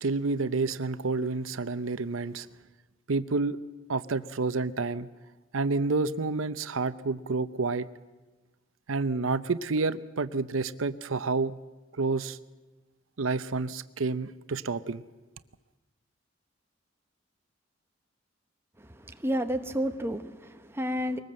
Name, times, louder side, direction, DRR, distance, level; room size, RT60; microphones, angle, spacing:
voice 1, 0.0-2.5 3.1-3.6 3.9-5.1 5.5-7.9 8.9-11.5 11.9-12.4 13.2-15.0, right 3 dB, 90° right, 0.7 m, -29 dB
voice 2, 18.8-21.2, equal, 10° right, 1.1 m, -31 dB
23.0 x 19.5 x 7.6 m
head